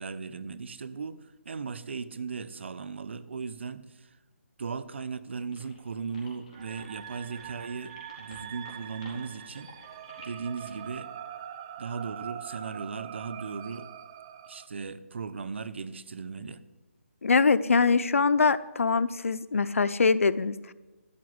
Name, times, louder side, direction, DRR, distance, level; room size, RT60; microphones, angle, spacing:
voice 1, 0.0-4.2 4.6-9.7 10.2-11.1 11.8-13.9 14.5-16.6, right 5 dB, 55° right, 14 dB, 0.9 m, -37 dB
sound 1, 5.5-10.9, left 3 dB, 30° left, 4.2 m, -52 dB
sound 2, 6.5-14.7, right 10 dB, 20° right, 0.5 m, -43 dB
voice 2, 17.2-20.7, left 4 dB, 75° left, 15 dB, 0.8 m, -23 dB
13.0 x 7.3 x 9.6 m, 1.1 s
hypercardioid pair, 165°, 7 cm